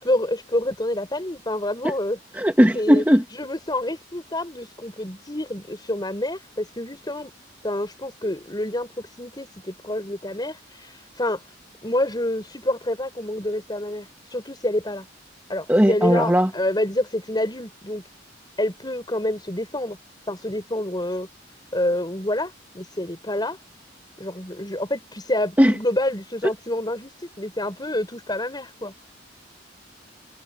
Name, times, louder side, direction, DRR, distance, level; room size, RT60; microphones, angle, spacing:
voice 1, 0.0-2.2 2.7-3.0 3.3-7.3 7.6-11.4 11.8-15.1 15.5-18.0 18.6-20.0 20.3-21.3 21.7-23.6 24.2-28.9, left 1 dB, 20° left, 5.6 m, -27 dB
voice 2, 2.4-3.2 15.7-16.5 25.6-25.7, equal, 10° right, 1.4 m, -17 dB
head